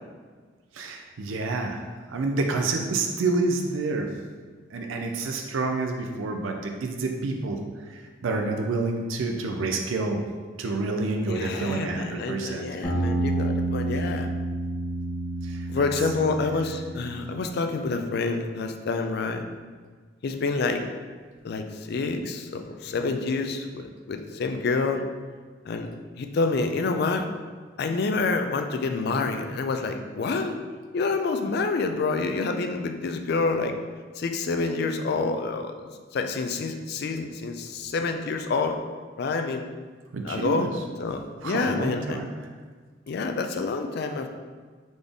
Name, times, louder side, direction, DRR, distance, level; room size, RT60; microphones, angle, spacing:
voice 1, 0.7-1.8 2.1-4.1 4.7-7.6 7.9-10.2 10.6-12.7 15.4-15.9 40.1-40.7 41.4-42.3, right 3 dB, 85° right, 3 dB, 0.4 m, -28 dB
voice 2, 11.3-14.3 15.7-19.4 20.2-20.8 21.4-25.0 25.7-25.9 26.2-27.3 27.8-30.6 30.9-33.7 34.2-35.7 36.1-38.8 39.2-39.6 40.2-40.7 41.0-42.2 43.1-44.3, left 3 dB, 55° left, 6 dB, 0.4 m, -27 dB
sound 1, 12.8-17.5, right 1 dB, 20° left, 1.0 m, -29 dB
4.0 x 3.4 x 3.5 m, 1.5 s
head